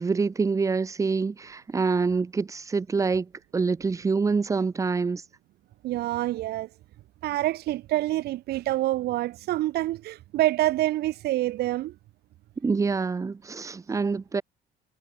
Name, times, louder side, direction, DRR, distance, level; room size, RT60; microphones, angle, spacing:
voice 1, 0.0-5.2 12.6-14.4, right 4 dB, 20° right, 0.6 m, -26 dB
voice 2, 5.8-6.7 7.2-11.9, right 16 dB, 70° right, 1.1 m, -26 dB
cardioid pair, 110°, 17 cm